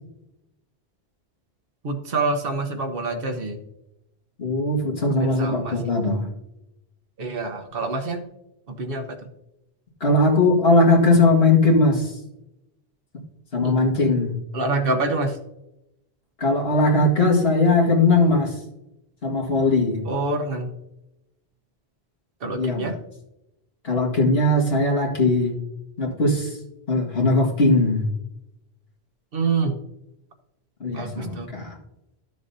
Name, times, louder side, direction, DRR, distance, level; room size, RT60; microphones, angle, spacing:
voice 1, 1.8-3.6 5.2-5.8 7.2-8.2 8.7-9.2 13.6-13.8 14.5-15.4 20.0-20.7 22.4-22.9 29.3-29.8 30.9-31.5, right 3 dB, 60° right, 6 dB, 1.2 m, -26 dB
voice 2, 4.4-6.3 10.0-12.1 13.5-14.4 16.4-18.5 19.2-20.0 22.4-22.9 23.8-25.5 26.0-26.6 26.9-28.1 30.8-31.7, left 2 dB, 70° left, -2 dB, 2.1 m, -19 dB
12.0 x 6.9 x 2.7 m, 0.89 s
omnidirectional pair, 1.1 m